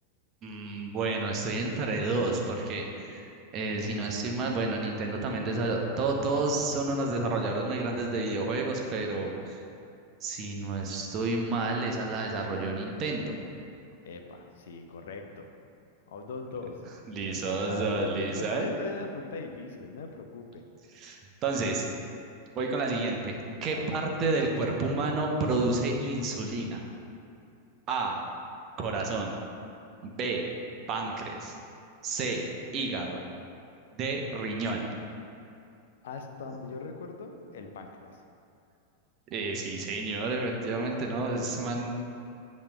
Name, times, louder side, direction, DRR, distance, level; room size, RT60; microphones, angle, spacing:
voice 1, 0.4-9.6 10.2-13.3 17.1-18.7 20.9-21.8 22.6-26.8 27.9-28.2 28.8-29.3 30.0-30.4 30.9-31.5 32.0-32.4 32.7-33.2 33.9-35.0 39.3-41.9, right 3 dB, 35° right, 1 dB, 0.9 m, -30 dB
voice 2, 14.0-15.5 16.1-16.8 17.2-20.6 23.7-23.9 36.0-38.2 41.1-41.2, left 4 dB, 60° left, 4 dB, 0.6 m, -40 dB
8.6 x 3.1 x 5.6 m, 2.5 s
figure-of-eight pair, 90°, 0 cm